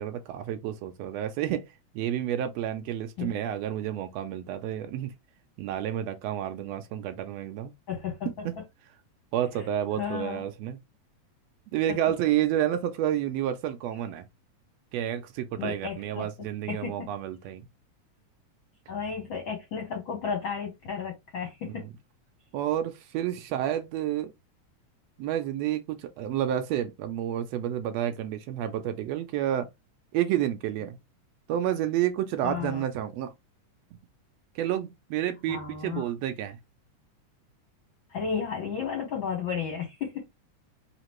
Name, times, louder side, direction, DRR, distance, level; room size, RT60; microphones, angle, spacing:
voice 1, 0.0-1.6 1.9-5.1 5.6-7.7 8.2-8.6 9.3-10.8 11.7-14.2 14.9-17.7 21.6-21.9 22.5-24.3 25.2-29.7 30.1-31.0 31.5-33.3 34.5-36.6, right 11 dB, 80° right, 1.5 m, -30 dB
voice 2, 7.9-8.4 10.0-10.4 15.6-16.3 16.7-17.1 18.9-21.8 32.4-32.8 35.5-36.1 38.1-40.2, left 6 dB, 65° left, 1.2 m, -33 dB
5.0 x 2.8 x 3.0 m
omnidirectional pair, 3.5 m